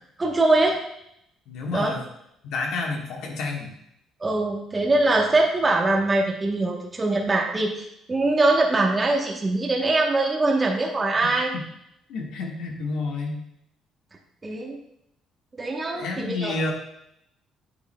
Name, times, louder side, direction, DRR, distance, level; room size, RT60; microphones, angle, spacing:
voice 1, 0.2-0.8 1.7-1.9 4.2-7.8 8.1-11.5 14.4-14.8 15.6-16.5, right 2 dB, 20° right, 0 dB, 1.0 m, -22 dB
voice 2, 1.5-2.0 2.4-3.7 11.2-11.3 12.1-13.4 15.9-16.7, left 3 dB, 75° left, 0 dB, 1.3 m, -29 dB
9.1 x 8.3 x 2.2 m, 0.78 s
cardioid pair, 130°, 0 cm